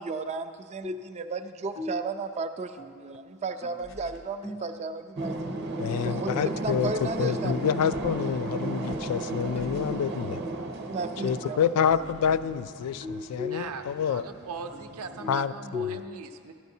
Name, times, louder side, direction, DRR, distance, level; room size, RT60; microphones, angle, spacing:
voice 1, 0.0-5.6 6.0-7.8 10.9-11.8, right 3 dB, 30° right, 9 dB, 0.3 m, -34 dB
sound 1, 0.8-1.2 1.7-2.2 2.8-3.3 3.6-4.0 4.4-5.7 6.3-9.2 9.5-9.8 11.4-13.8 14.2-16.0, left 4 dB, 25° left, 0.5 m, -40 dB
sound 2, 3.8-4.4 6.6-7.2 9.4-10.1 11.9-12.6, equal, 55° left, 0.8 m, -50 dB
sound 3, 5.2-15.4, right 2 dB, 50° right, 0.8 m, -35 dB
voice 2, 5.8-10.4 11.2-14.3 15.3-16.0, left 7 dB, 85° left, 15 dB, 0.3 m, -28 dB
voice 3, 13.5-16.5, right 4 dB, 75° right, 6 dB, 0.6 m, -40 dB
12.5 x 11.5 x 2.7 m, 2.1 s
head